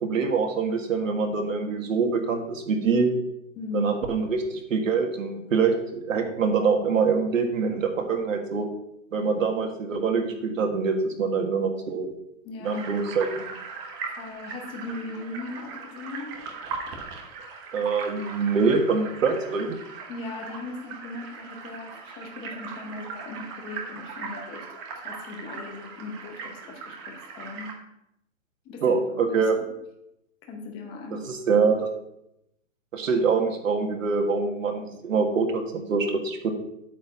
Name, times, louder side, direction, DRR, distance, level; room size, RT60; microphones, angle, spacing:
voice 1, 0.0-3.1 3.7-8.7 9.1-12.1 12.6-13.5 17.7-19.8 28.8-29.6 31.3-31.9 32.9-36.5, right 5 dB, 75° right, 3 dB, 1.9 m, -24 dB
voice 2, 3.6-3.9 12.4-13.1 14.0-16.4 20.1-27.8 28.6-29.3 30.4-31.3, left 3 dB, 15° left, 3 dB, 0.8 m, -38 dB
sound 1, 12.6-27.7, right 5 dB, 20° right, 1.1 m, -39 dB
8.6 x 4.5 x 7.0 m, 0.82 s
hypercardioid pair, 160°, 39 cm